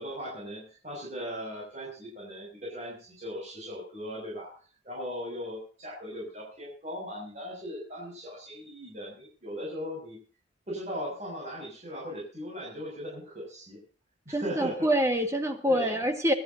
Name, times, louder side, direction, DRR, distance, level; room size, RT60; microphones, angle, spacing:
voice 1, 0.0-4.5 4.8-10.2 10.7-13.8 14.2-14.9 15.7-16.0, equal, 35° right, -4 dB, 6.8 m, -38 dB
voice 2, 14.3-16.3, equal, 15° right, 5 dB, 1.8 m, -26 dB
25.0 x 12.0 x 2.8 m, 0.40 s
head